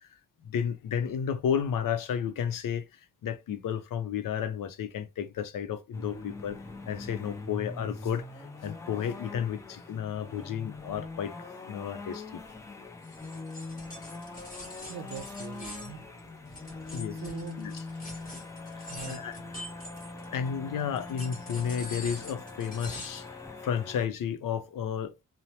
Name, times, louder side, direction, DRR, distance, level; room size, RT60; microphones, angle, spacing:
voice 1, 0.4-2.9 3.2-6.6 6.9-11.3 11.7-12.4 16.9-17.2 17.6-17.7 18.7-19.4 20.3-23.3 23.6-25.1, left 8 dB, 85° left, 0.5 m, -32 dB
sound 1, 5.9-24.1, left 3 dB, 10° left, 0.3 m, -42 dB
sound 2, 13.0-20.5 21.0-23.3, left 1 dB, 25° left, 1.1 m, -45 dB
voice 2, 14.9-17.7 18.3-18.5 18.9-19.5, right 6 dB, 85° right, 0.5 m, -44 dB
2.8 x 2.0 x 3.0 m
wide cardioid pair, 175°, 32 cm